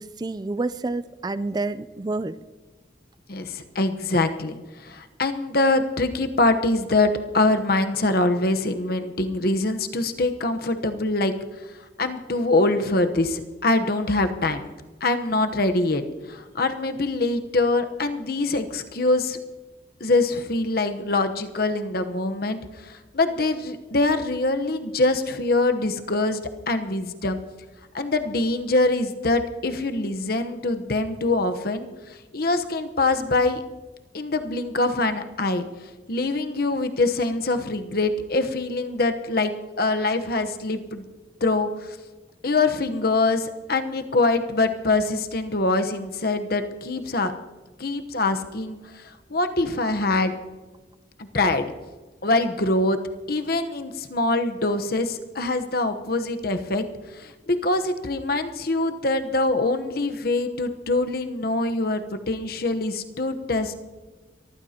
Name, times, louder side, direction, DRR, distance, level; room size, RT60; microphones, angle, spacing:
voice 1, 0.0-2.4, right 2 dB, 20° right, 14 dB, 0.4 m, -29 dB
voice 2, 3.3-11.3 12.0-14.6 15.0-16.0 16.3-19.4 20.0-26.4 26.7-27.4 27.9-33.6 34.1-35.7 36.1-39.5 39.8-41.0 41.4-42.0 42.4-47.3 47.8-50.3 51.2-51.7 52.2-53.0 53.3-56.8 57.1-63.7, left 2 dB, 50° left, 7 dB, 1.0 m, -24 dB
23.5 x 14.5 x 2.9 m, 1.2 s
head